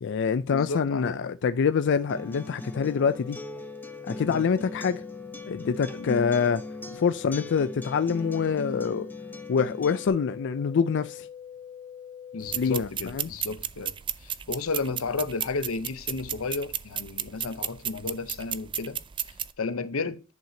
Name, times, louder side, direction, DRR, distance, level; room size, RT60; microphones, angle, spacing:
voice 1, 0.0-3.4 4.1-5.0 5.5-6.6 7.0-9.1 9.5-11.3 12.5-13.3, left 6 dB, 60° left, 0.4 m, -25 dB
voice 2, 0.5-1.3 4.3-4.5 5.9-6.3 12.3-13.9 14.2-19.0 19.6-20.2, left 4 dB, 85° left, 0.7 m, -33 dB
Acoustic guitar, 2.1-10.1, left 1 dB, 10° left, 0.8 m, -40 dB
sound 1, 2.7-12.7, left 8 dB, 45° left, 1.0 m, -44 dB
sound 2, 12.4-19.5, right 9 dB, 25° right, 0.4 m, -34 dB
10.5 x 5.7 x 2.8 m
head